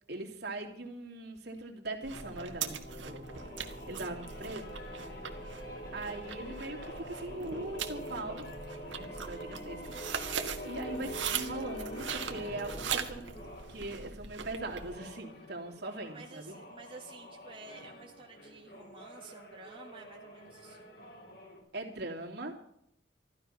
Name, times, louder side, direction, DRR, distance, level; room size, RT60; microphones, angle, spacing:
voice 1, 0.1-2.8 3.0-3.3 3.9-4.8 5.9-8.5 8.9-10.4 10.6-16.6 21.7-22.5, right 2 dB, 60° right, 1 dB, 2.8 m, -41 dB
sound 1, 2.0-15.0, right 7 dB, 85° right, 1.6 m, -41 dB
sound 2, 2.1-13.8 14.5-21.6, equal, 55° left, 4.9 m, -45 dB
voice 2, 3.4-4.5 16.1-20.8, right 3 dB, 30° right, -1 dB, 1.6 m, -52 dB
14.0 x 13.0 x 5.6 m, 0.74 s
head